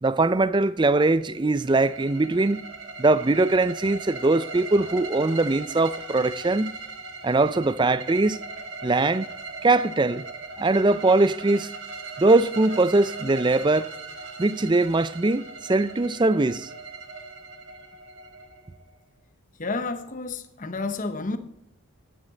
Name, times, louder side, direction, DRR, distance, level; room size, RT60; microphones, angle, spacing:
voice 1, 0.0-2.7 3.0-6.7 7.2-8.4 8.8-9.3 9.6-10.2 10.6-11.7 12.2-13.9 14.4-16.7, right 2 dB, 20° right, 0.4 m, -21 dB
sound 1, 1.2-18.9, right 3 dB, 55° right, 1.8 m, -39 dB
voice 2, 19.6-21.4, left 3 dB, 35° left, 0.9 m, -30 dB
11.0 x 9.9 x 4.1 m
head